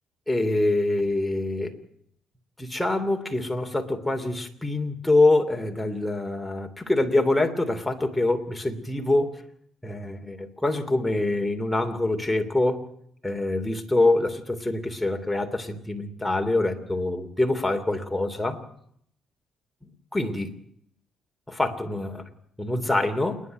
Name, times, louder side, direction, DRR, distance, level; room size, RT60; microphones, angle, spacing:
voice 1, 0.3-1.8 2.6-9.4 9.8-12.8 13.2-18.6 20.1-20.5 21.5-22.2 22.6-23.4, left 2 dB, 10° left, 4 dB, 3.0 m, -25 dB
28.0 x 11.0 x 9.4 m, 0.69 s
cardioid pair, 90°, 0 cm